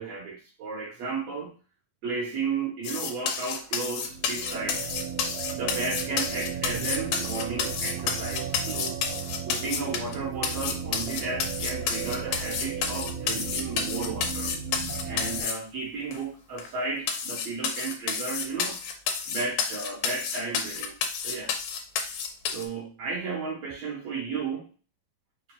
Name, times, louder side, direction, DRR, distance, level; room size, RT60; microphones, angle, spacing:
voice 1, 0.0-1.6 2.0-4.9 5.5-9.0 9.5-14.5 15.1-18.8 19.3-21.5 22.5-24.7, right 4 dB, 65° right, -2 dB, 1.7 m, -34 dB
sound 1, 2.8-10.1 10.4-15.5 16.1-16.2 16.6-16.7 17.1-22.7, left 6 dB, 80° left, 2.3 m, -30 dB
sound 2, 3.9-15.4, right 7 dB, 85° right, 2.2 m, -35 dB
5.0 x 3.9 x 2.2 m, 0.35 s
omnidirectional pair, 3.8 m